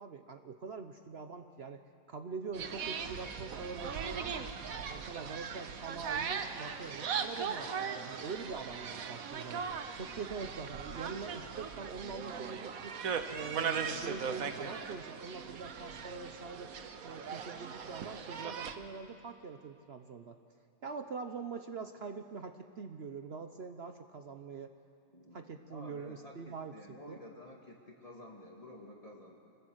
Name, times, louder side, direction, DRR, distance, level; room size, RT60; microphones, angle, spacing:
voice 1, 0.0-1.8 2.1-4.5 4.9-9.7 9.9-13.0 13.3-16.7 17.0-20.4 20.8-24.7 25.3-27.2, right 5 dB, 50° right, 7 dB, 1.0 m, -44 dB
sound 1, 2.5-18.8, right 6 dB, 75° right, 1.5 m, -39 dB
voice 2, 25.1-29.4, left 1 dB, 25° left, -1 dB, 2.0 m, -51 dB
25.0 x 20.0 x 7.9 m, 2.3 s
omnidirectional pair, 1.5 m